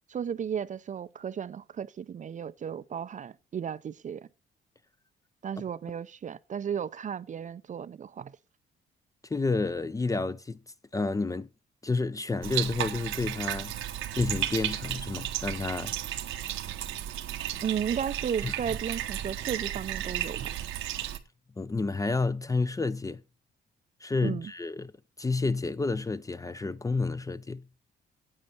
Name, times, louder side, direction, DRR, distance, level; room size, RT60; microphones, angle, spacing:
voice 1, 0.1-4.3 5.4-8.4 17.6-20.4 24.2-24.5, right 8 dB, 40° right, 0.4 m, -34 dB
voice 2, 9.3-10.6 10.9-11.5 11.8-13.7 14.1-15.9 18.4-18.5 21.6-23.2 24.0-24.9 25.2-27.7, left 3 dB, 15° left, 0.4 m, -30 dB
Bathtub (filling or washing), 12.4-21.2, right 12 dB, 80° right, 0.9 m, -34 dB
8.8 x 8.7 x 4.2 m
cardioid pair, 90°, 20 cm